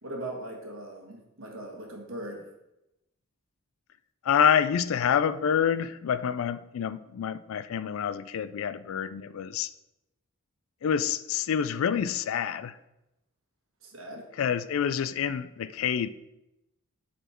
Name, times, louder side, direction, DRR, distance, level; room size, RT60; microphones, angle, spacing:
voice 1, 0.0-2.5 13.8-14.3, right 1 dB, 65° right, 1.4 m, -39 dB
voice 2, 4.2-9.7 10.8-12.8 14.4-16.1, left 8 dB, 70° left, 0.3 m, -27 dB
8.1 x 4.3 x 4.3 m
head